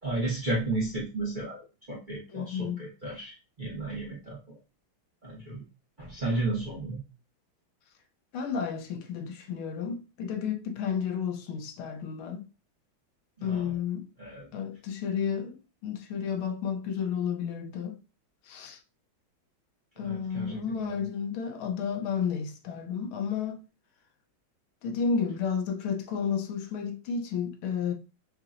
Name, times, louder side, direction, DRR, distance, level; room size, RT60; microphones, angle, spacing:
voice 1, 0.0-4.6 5.2-5.6 6.0-7.0 13.4-13.7 14.2-14.5 20.0-21.0, right 2 dB, 30° right, 0.9 m, -33 dB
voice 2, 2.3-2.9 8.3-12.4 13.4-14.1 14.5-15.6 15.8-18.0 18.5-18.8 20.0-23.6 24.8-27.9, left 6 dB, 90° left, 1.6 m, -32 dB
6.1 x 2.8 x 2.5 m
omnidirectional pair, 2.2 m